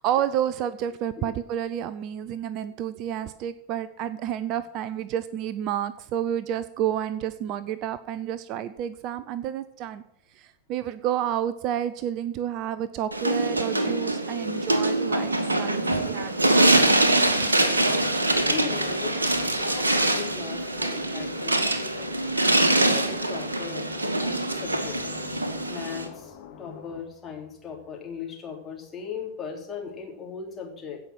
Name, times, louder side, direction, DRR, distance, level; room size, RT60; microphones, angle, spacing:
voice 1, 0.0-10.0 10.3-16.6, right 10 dB, 40° right, 14 dB, 0.6 m, -30 dB
sound 1, 13.1-26.1, right 1 dB, 80° right, 1.3 m, -24 dB
sound 2, 15.1-27.0, left 7 dB, 45° left, 2.0 m, -45 dB
voice 2, 17.5-19.2 19.7-25.0 25.7-31.0, left 6 dB, 20° left, 0 dB, 3.5 m, -39 dB
16.5 x 5.8 x 6.2 m, 0.79 s
figure-of-eight pair, 90°, 0 cm